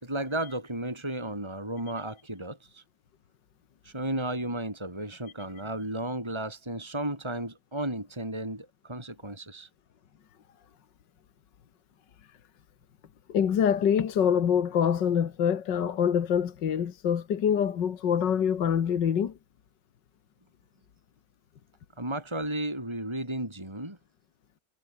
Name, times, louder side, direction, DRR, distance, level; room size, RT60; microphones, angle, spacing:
voice 1, 0.0-2.8 3.8-9.7 22.0-24.0, right 1 dB, 15° right, 4.5 m, -34 dB
voice 2, 13.3-19.3, left 8 dB, 70° left, 2.1 m, -25 dB
omnidirectional pair, 2.0 m